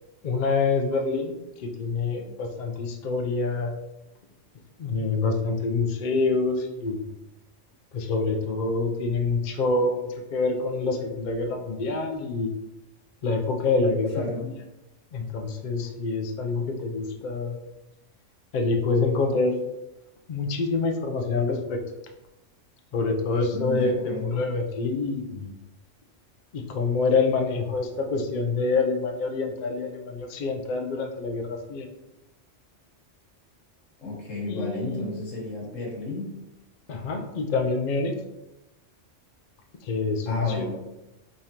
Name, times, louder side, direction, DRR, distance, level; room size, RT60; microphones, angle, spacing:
voice 1, 0.2-3.7 4.8-7.0 7.9-12.5 13.2-14.5 15.1-17.6 18.5-19.6 20.3-21.8 22.9-25.5 26.5-31.9 34.5-35.1 36.9-38.1 39.8-40.8, left 3 dB, 55° left, 4 dB, 0.5 m, -26 dB
voice 2, 14.1-14.5 23.5-24.3 34.0-36.3 40.3-40.8, left 2 dB, 90° left, -3 dB, 1.5 m, -33 dB
3.7 x 3.2 x 2.8 m, 0.95 s
omnidirectional pair, 1.3 m